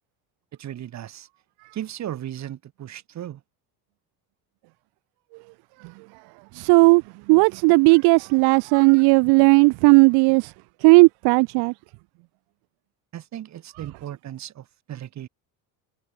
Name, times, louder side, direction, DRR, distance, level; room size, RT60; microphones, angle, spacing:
voice 1, 0.6-1.3 1.7-3.4 13.1-15.3, right 11 dB, 45° right, 3.6 m, -36 dB
voice 2, 6.5-7.0 7.3-10.5 10.8-11.7, right 30 dB, 80° right, 0.8 m, -15 dB
cardioid pair, 135°, 38 cm